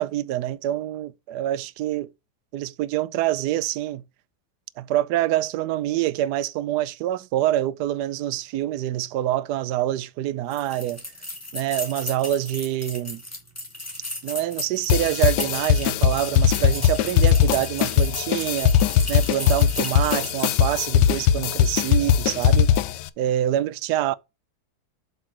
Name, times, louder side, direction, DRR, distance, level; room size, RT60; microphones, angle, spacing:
voice 1, 0.0-2.1 2.5-4.0 4.8-11.0 11.5-13.2 14.2-18.8 19.1-22.7 23.2-24.2, right 13 dB, 75° right, 1.1 m, -26 dB
sound 1, 10.5-20.6, left 1 dB, 10° left, 1.9 m, -36 dB
sound 2, 14.9-23.1, left 9 dB, 85° left, 1.2 m, -20 dB
7.6 x 3.8 x 5.9 m
omnidirectional pair, 1.8 m